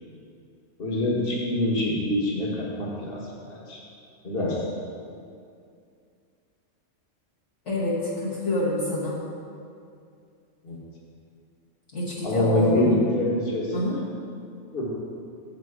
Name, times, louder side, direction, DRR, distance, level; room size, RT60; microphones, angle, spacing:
voice 1, 0.8-3.2 3.5-3.8 4.2-4.6 10.6-10.8 12.2-13.7 14.7-14.9, left 1 dB, 45° left, -4 dB, 1.6 m, -25 dB
voice 2, 7.6-9.2 11.9-13.0 13.7-14.0, left 1 dB, 60° left, -8 dB, 1.5 m, -27 dB
7.8 x 6.8 x 4.8 m, 2.4 s
omnidirectional pair, 1.4 m